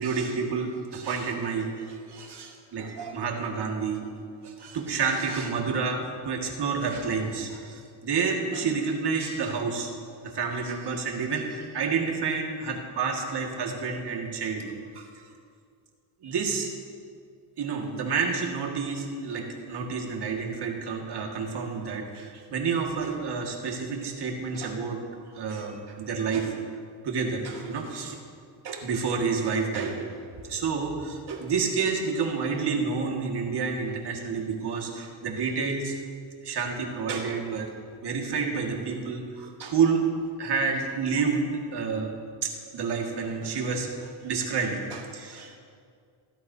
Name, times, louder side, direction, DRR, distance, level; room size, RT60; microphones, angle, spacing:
voice 1, 0.0-4.1 4.4-9.9 10.2-15.1 16.2-16.7 17.6-25.0 25.3-26.5 27.0-28.2 28.6-30.1 30.4-35.9 36.4-37.7 38.0-40.1 40.4-42.1 42.4-45.6, right 5 dB, 55° right, 1 dB, 2.1 m, -29 dB
17.0 x 12.5 x 2.8 m, 2.2 s
cardioid pair, 100°, 47 cm